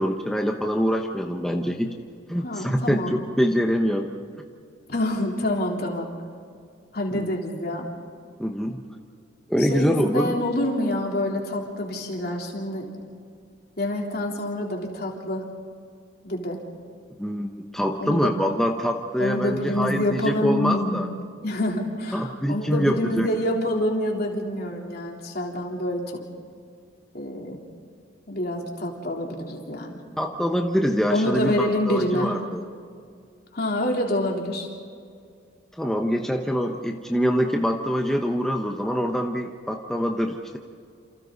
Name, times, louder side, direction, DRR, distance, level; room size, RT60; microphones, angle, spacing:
voice 1, 0.0-1.9 2.3-4.1 7.1-7.3 8.4-8.8 9.5-10.3 17.2-21.1 22.1-23.3 30.2-32.6 35.8-40.6, equal, ahead, 2 dB, 1.0 m, -25 dB
voice 2, 2.4-3.1 4.9-6.1 6.9-7.9 9.6-12.9 13.8-15.4 16.2-16.6 18.0-18.4 19.2-26.2 27.1-27.6 28.3-30.0 31.1-32.3 33.5-34.7, left 1 dB, 55° left, -1 dB, 3.7 m, -27 dB
29.5 x 28.0 x 4.1 m, 2.2 s
head